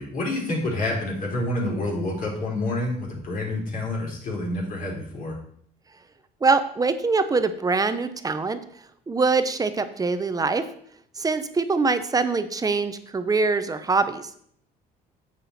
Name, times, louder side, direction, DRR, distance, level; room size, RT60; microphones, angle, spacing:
voice 1, 0.0-5.4, left 1 dB, 55° left, -2 dB, 3.9 m, -28 dB
voice 2, 6.4-8.6 9.1-10.6 11.2-14.3, right 4 dB, 20° right, 10 dB, 0.8 m, -23 dB
9.3 x 7.6 x 4.3 m, 0.66 s
cardioid pair, 110°, 17 cm